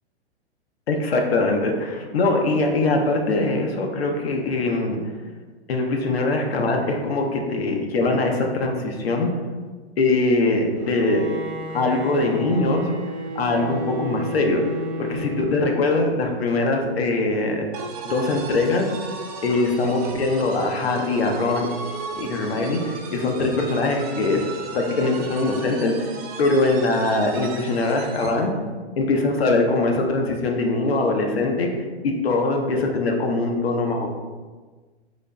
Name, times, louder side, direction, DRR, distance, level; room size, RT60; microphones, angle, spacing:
voice 1, 0.9-5.0 5.7-9.3 10.0-11.3 11.7-12.9 13.4-14.6 15.0-17.6 18.0-18.9 19.4-21.7 22.2-24.4 24.7-26.1 26.4-28.5 29.0-31.7 32.0-34.1, left 2 dB, 65° left, 2 dB, 0.6 m, -22 dB
Bowed string instrument, 10.8-16.1, right 1 dB, 80° right, 0.6 m, -32 dB
sound 1, 17.7-28.5, right 4 dB, 35° right, 0.4 m, -36 dB
3.9 x 2.8 x 2.2 m, 1.4 s
figure-of-eight pair, 110°, 33 cm